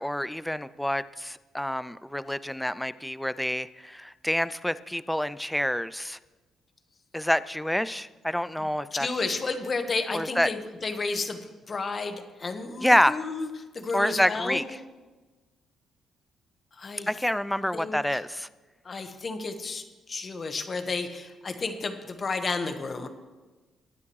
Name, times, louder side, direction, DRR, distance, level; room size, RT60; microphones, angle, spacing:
voice 1, 0.0-6.2 7.1-9.1 10.1-10.5 12.8-13.1 13.9-14.6 17.1-18.5, equal, 5° left, 16 dB, 0.4 m, -27 dB
voice 2, 8.6-13.5 13.7-14.6 16.7-17.1 17.7-18.2 18.8-23.1, left 3 dB, 40° left, 7 dB, 1.3 m, -32 dB
20.0 x 9.5 x 3.2 m, 1.2 s
cardioid pair, 90°, 0 cm